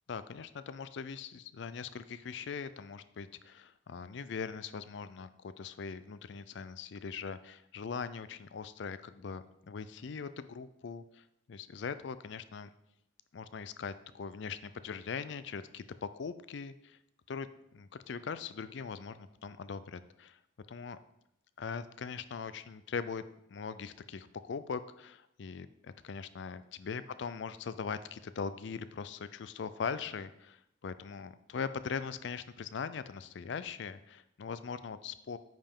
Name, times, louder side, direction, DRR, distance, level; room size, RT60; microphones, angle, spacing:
voice 1, 0.1-12.7 13.3-17.0 17.3-20.4 20.7-21.0 21.6-23.2 23.5-35.4, left 5 dB, 65° left, 13 dB, 0.4 m, -41 dB
8.9 x 5.5 x 3.6 m, 0.81 s
head